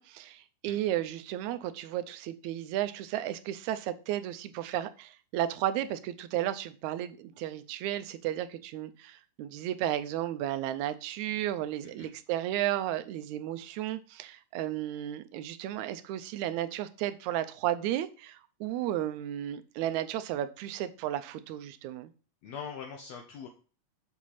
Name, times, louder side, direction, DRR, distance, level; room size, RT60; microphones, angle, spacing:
voice 1, 0.0-22.1, right 12 dB, 80° right, 1.9 m, -33 dB
voice 2, 22.4-23.5, left 7 dB, 70° left, 1.9 m, -42 dB
6.2 x 5.9 x 4.1 m
omnidirectional pair, 3.4 m